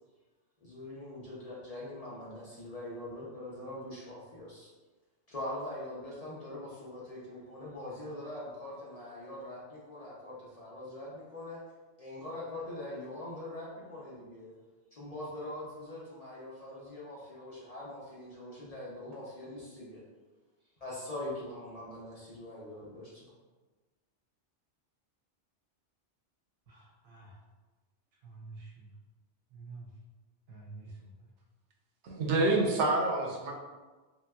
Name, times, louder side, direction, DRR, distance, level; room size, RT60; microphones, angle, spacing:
voice 1, 0.6-4.7 5.3-11.6 12.0-14.5 14.9-20.0 20.8-23.3, left 1 dB, 40° left, -7 dB, 0.6 m, -43 dB
voice 2, 26.7-27.4 28.2-28.9 29.5-29.9 30.5-31.3, right 3 dB, 55° right, -2 dB, 0.8 m, -49 dB
voice 3, 32.0-33.5, right 2 dB, 85° right, 0 dB, 0.9 m, -27 dB
3.3 x 2.9 x 2.3 m, 1.3 s
omnidirectional pair, 1.2 m